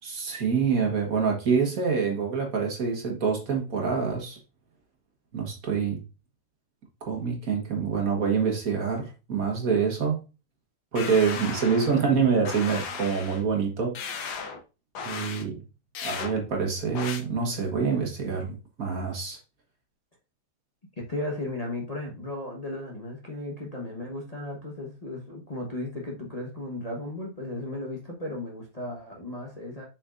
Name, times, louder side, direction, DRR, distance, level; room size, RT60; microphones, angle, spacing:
voice 1, 0.0-4.4 5.3-6.0 7.0-10.2 10.9-14.0 15.0-15.6 16.0-19.4, right 6 dB, 55° right, 1.8 m, -26 dB
sound 1, 11.0-12.1 12.5-13.4 14.0-14.6 15.0-15.4 16.0-16.3 17.0-17.2, left 5 dB, 70° left, 1.5 m, -35 dB
voice 2, 21.0-29.9, left 2 dB, 25° left, 1.1 m, -35 dB
7.2 x 5.3 x 2.5 m
omnidirectional pair, 1.8 m